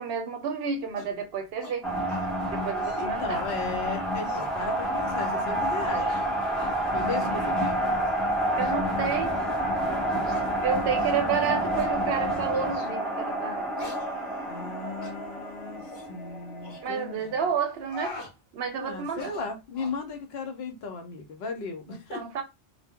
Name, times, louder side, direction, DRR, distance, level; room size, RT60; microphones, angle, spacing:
voice 1, 0.0-1.9 2.5-3.4 6.9-7.5 8.6-9.4 10.6-13.7 16.8-18.2 18.5-19.3 21.9-22.4, right 6 dB, 65° right, 0.7 m, -30 dB
sound 1, 1.0-1.2 1.6-1.8 2.1-2.3 2.7-3.1 3.5-3.6 4.1-4.6 5.2-5.5 5.9-6.2 6.5-6.7 7.2-7.4 7.9-8.2 8.6-8.7 9.3-9.4 10.2-10.5 11.0-11.2 11.7-11.9 12.7-13.0 13.8-14.7 15.0-15.2 15.8-16.1 16.6-16.8 17.6-18.3 19.1-20.0, left 2 dB, 25° left, 0.8 m, -43 dB
sound 2, 1.8-17.6, right 1 dB, ahead, 0.4 m, -29 dB
voice 2, 2.9-6.2 6.9-7.8 10.8-11.7 14.5-17.4 18.8-22.2, left 4 dB, 70° left, 0.8 m, -36 dB
2.1 x 2.0 x 3.4 m
omnidirectional pair, 1.1 m